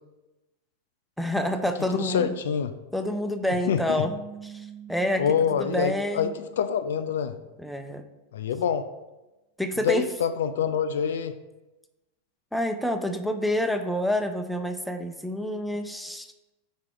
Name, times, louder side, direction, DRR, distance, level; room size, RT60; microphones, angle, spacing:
voice 1, 1.2-2.3 2.9-4.1 4.4-5.2 5.5-6.3 7.6-8.0 9.6-10.0 12.5-16.3, left 1 dB, ahead, 6 dB, 0.5 m, -28 dB
voice 2, 1.9-2.7 3.7-4.0 5.2-7.3 8.3-8.8 9.8-11.3, left 7 dB, 60° left, 10 dB, 0.3 m, -26 dB
sound 1, 4.0-7.3, right 7 dB, 45° right, 1.4 m, -45 dB
4.8 x 4.5 x 4.7 m, 1.0 s
figure-of-eight pair, 90°, 0 cm